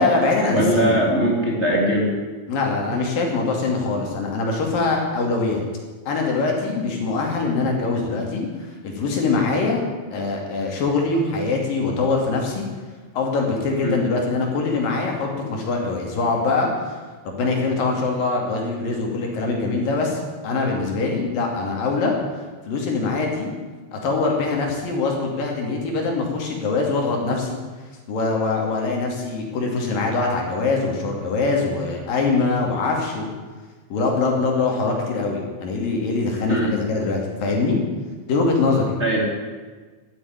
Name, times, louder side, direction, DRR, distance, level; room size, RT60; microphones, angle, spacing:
voice 1, 0.0-1.0 2.5-5.6 6.1-9.8 10.1-12.7 13.1-17.0 17.3-22.2 22.7-23.5 23.9-27.6 28.1-33.3 33.9-37.8 38.3-38.9, left 3 dB, 55° left, 0 dB, 3.9 m, -23 dB
voice 2, 0.5-2.1 13.8-14.0 36.5-36.7 39.0-39.3, right 1 dB, 30° right, -2 dB, 1.2 m, -20 dB
12.5 x 9.5 x 9.5 m, 1.4 s
omnidirectional pair, 5.2 m